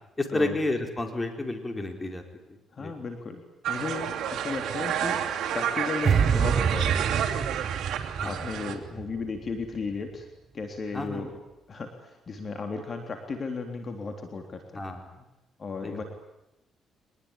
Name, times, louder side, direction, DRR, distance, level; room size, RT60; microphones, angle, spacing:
voice 1, 0.2-2.2 2.8-2.9 8.2-8.4 10.9-11.2 14.7-15.1 15.8-16.0, left 2 dB, 20° left, 5 dB, 4.5 m, -30 dB
voice 2, 2.7-5.2 5.5-7.1 8.2-10.3 10.5-11.3 11.7-14.9 15.6-16.0, left 4 dB, 40° left, 5 dB, 3.5 m, -35 dB
sound 1, 3.6-8.7, right 9 dB, 75° right, 3.0 m, -30 dB
sound 2, 6.1-9.2 9.5-9.8, right 7 dB, 50° right, 0.9 m, -26 dB
24.5 x 20.5 x 10.0 m, 0.93 s
cardioid pair, 90°, 0 cm